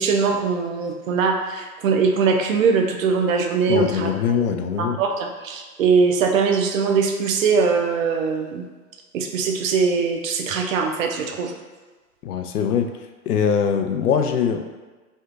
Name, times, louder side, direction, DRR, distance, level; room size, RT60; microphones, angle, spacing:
voice 1, 0.0-4.1 4.4-4.5 4.8-8.6 9.1-11.6, right 5 dB, 60° right, 3 dB, 0.6 m, -21 dB
voice 2, 3.7-5.0 12.2-12.9 13.3-14.6, left 7 dB, 75° left, 6 dB, 0.5 m, -22 dB
3.5 x 2.6 x 2.5 m, 1.3 s
figure-of-eight pair, 110°, 45 cm